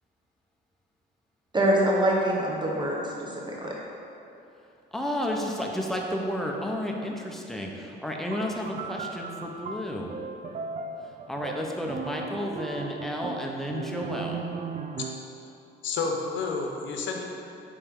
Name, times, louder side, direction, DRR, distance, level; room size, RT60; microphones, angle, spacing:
voice 1, 1.5-3.7, right 1 dB, 20° right, -3 dB, 1.3 m, -25 dB
voice 2, 4.9-10.1 11.3-14.4, equal, ahead, 0 dB, 0.8 m, -32 dB
sound 1, 8.3-15.4, right 5 dB, 40° right, 0.4 m, -37 dB
voice 3, 15.8-17.2, left 4 dB, 70° left, 2 dB, 0.9 m, -30 dB
9.4 x 3.3 x 3.7 m, 2.8 s
cardioid pair, 90°, 20 cm